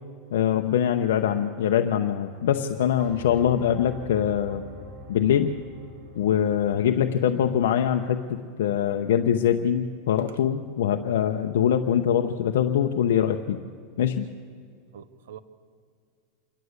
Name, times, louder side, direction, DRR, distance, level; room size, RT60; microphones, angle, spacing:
voice 1, 0.3-4.6 5.1-5.5 6.2-13.6 14.0-14.3, left 9 dB, 85° left, 5 dB, 0.8 m, -23 dB
sound 1, 3.0-7.2, left 2 dB, 35° right, 3.9 m, -44 dB
voice 2, 3.3-3.9 10.3-10.4 14.9-15.4, right 9 dB, 85° right, 10 dB, 0.9 m, -46 dB
27.0 x 12.0 x 8.1 m, 2.2 s
supercardioid pair, 150°, 0 cm